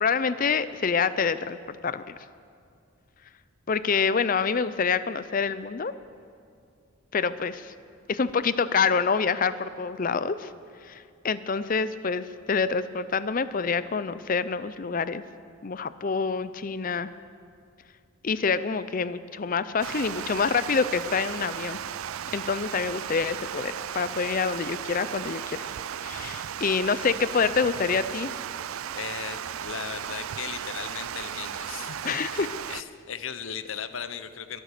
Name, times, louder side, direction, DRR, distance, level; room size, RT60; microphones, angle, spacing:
voice 1, 0.0-2.1 3.7-5.9 7.1-7.7 8.1-10.5 10.9-15.2 15.6-17.1 18.2-21.8 22.3-25.7 26.0-28.3 32.0-32.5, left 5 dB, 40° left, 14 dB, 0.5 m, -27 dB
Water, 19.8-32.8, right 9 dB, 80° right, 0.4 m, -35 dB
voice 2, 29.0-32.4 32.7-34.6, left 7 dB, 70° left, 12 dB, 0.8 m, -37 dB
22.5 x 9.1 x 6.7 m, 2.3 s
head